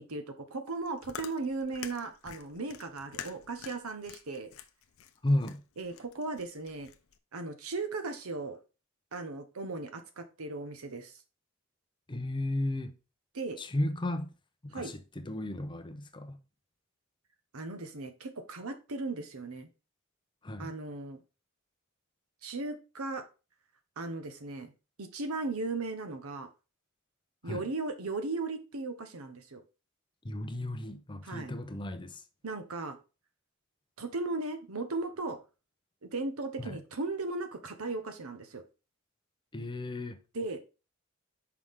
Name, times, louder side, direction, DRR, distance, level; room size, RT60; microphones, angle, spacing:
voice 1, 0.0-4.5 5.8-6.9 7.3-8.6 9.1-11.1 13.3-13.6 14.7-14.9 17.5-19.7 20.6-21.2 22.4-23.2 24.0-24.7 25.0-26.5 27.4-29.6 31.2-31.5 32.4-33.0 34.0-35.4 36.0-38.6 40.3-40.6, right 3 dB, 80° right, 1.0 m, -37 dB
Chewing mastication, 0.7-7.2, left 8 dB, 70° left, 0.6 m, -47 dB
voice 2, 5.2-5.6 12.1-12.9 13.6-14.3 14.6-16.4 20.4-20.7 27.4-27.7 30.2-32.2 36.6-36.8 39.5-40.2, left 1 dB, 20° left, 0.6 m, -34 dB
5.8 x 4.8 x 3.6 m
head